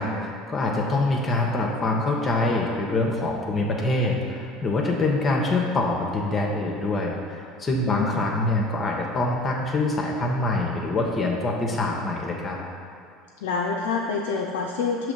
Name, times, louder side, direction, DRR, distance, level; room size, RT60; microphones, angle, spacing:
voice 1, 0.0-12.6, left 2 dB, 30° left, -1 dB, 0.8 m, -25 dB
voice 2, 7.9-8.3 13.4-15.1, left 5 dB, 75° left, -1 dB, 0.4 m, -27 dB
6.0 x 3.0 x 5.2 m, 2.5 s
hypercardioid pair, 75°, 0 cm